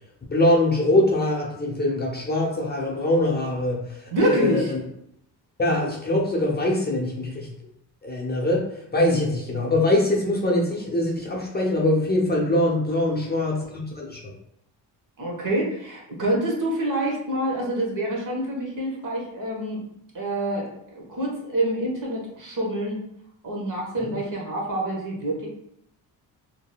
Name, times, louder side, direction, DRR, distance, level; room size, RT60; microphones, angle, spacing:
voice 1, 0.3-4.8 5.6-7.5 8.0-8.7 8.9-14.3 24.1-24.2, left 1 dB, 25° left, -3 dB, 0.7 m, -23 dB
voice 2, 4.1-4.7 15.2-19.8 20.1-20.7 20.9-23.0 23.4-25.5, right 1 dB, 45° right, -2 dB, 1.1 m, -26 dB
3.6 x 2.1 x 2.3 m, 0.74 s
cardioid pair, 75°, 43 cm